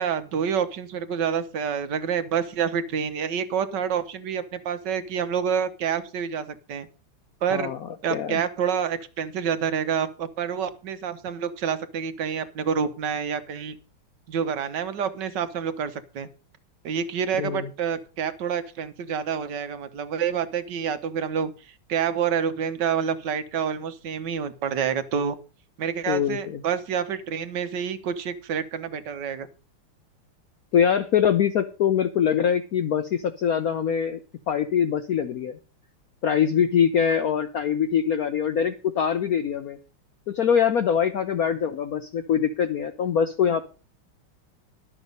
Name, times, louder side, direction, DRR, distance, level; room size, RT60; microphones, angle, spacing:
voice 1, 0.0-6.9 7.4-7.7 8.0-13.8 14.3-16.3 16.8-21.5 21.9-25.3 25.8-29.5, right 7 dB, 60° right, 11 dB, 1.5 m, -28 dB
voice 2, 7.5-8.4 17.4-17.7 26.1-26.6 30.7-34.2 34.5-35.6 36.2-39.8 40.3-43.6, left 8 dB, 70° left, 10 dB, 0.8 m, -23 dB
12.0 x 7.2 x 5.3 m, 0.35 s
omnidirectional pair, 2.4 m